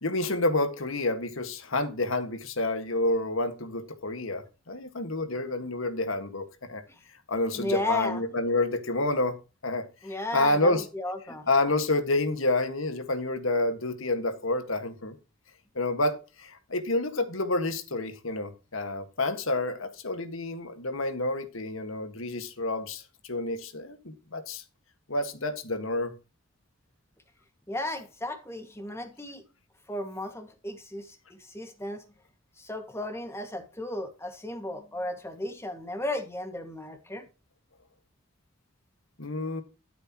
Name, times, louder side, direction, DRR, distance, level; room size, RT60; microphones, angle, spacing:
voice 1, 0.0-6.8 7.3-9.4 9.6-9.9 10.3-10.8 11.5-15.2 15.8-24.6 25.1-26.1 39.2-39.6, left 2 dB, 80° left, 1.8 m, -29 dB
voice 2, 7.5-8.2 10.0-11.5 27.7-29.4 29.9-32.0 32.6-37.3, left 1 dB, 15° left, 1.9 m, -34 dB
13.5 x 8.1 x 3.0 m
head